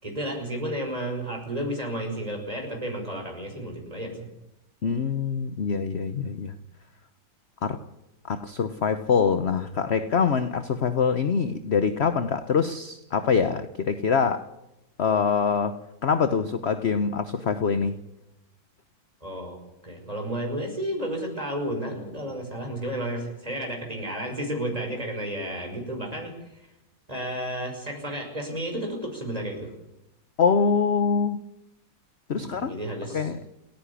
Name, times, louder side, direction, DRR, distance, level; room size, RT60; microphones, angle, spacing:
voice 1, 0.0-4.3 19.2-19.6 19.8-26.3 27.1-29.7 32.4-33.3, right 1 dB, 15° right, 5.8 m, -32 dB
voice 2, 4.8-6.5 7.6-7.8 8.2-14.5 15.0-18.0 30.4-31.4 32.3-32.7 33.1-33.4, left 6 dB, 50° left, 0.8 m, -24 dB
29.0 x 10.0 x 10.0 m
omnidirectional pair, 2.2 m